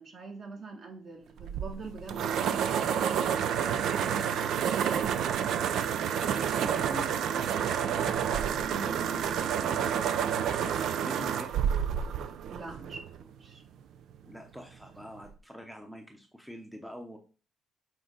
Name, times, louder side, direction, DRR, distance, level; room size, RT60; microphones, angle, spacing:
voice 1, 0.0-4.9 8.7-8.9 12.5-13.6, right 3 dB, 45° right, 1.9 m, -44 dB
sound 1, 1.4-13.2, right 8 dB, 75° right, 0.5 m, -29 dB
voice 2, 6.2-7.9 8.6-11.5 14.2-17.2, equal, 5° right, 0.7 m, -45 dB
7.6 x 4.3 x 3.9 m
cardioid pair, 135°, 0 cm